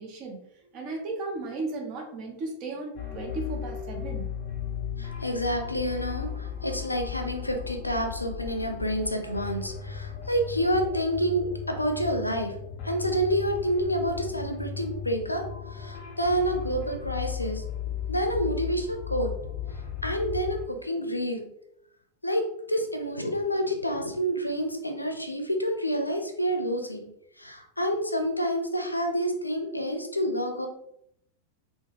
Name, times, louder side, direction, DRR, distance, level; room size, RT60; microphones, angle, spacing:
voice 1, 0.0-4.3, right 3 dB, 40° right, 1 dB, 0.6 m, -35 dB
sound 1, 3.0-20.7, left 7 dB, 40° left, 0.7 m, -36 dB
voice 2, 5.0-12.6 12.8-15.4 15.7-17.6 18.1-19.3 20.0-21.5 22.2-22.4 22.7-27.1 27.4-30.7, equal, 85° left, 4 dB, 0.4 m, -28 dB
2.2 x 2.1 x 3.2 m, 0.76 s
figure-of-eight pair, 90°, 0 cm